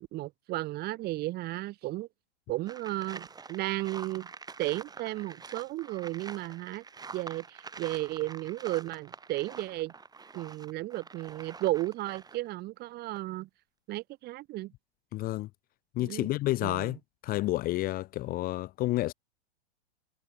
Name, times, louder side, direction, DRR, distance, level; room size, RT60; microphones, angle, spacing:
voice 1, 0.0-2.1 2.5-4.3 4.6-6.8 7.1-9.9 10.3-13.5 13.9-14.7 16.0-16.3 16.6-17.0, right 17 dB, 30° right, 0.9 m, -34 dB
sound 1, 2.7-12.5 13.0-13.2, right 4 dB, 10° right, 2.1 m, -46 dB
voice 2, 15.1-15.5 16.0-17.0 17.2-19.1, left 17 dB, 25° left, 0.7 m, -30 dB
hypercardioid pair, 105°, 33 cm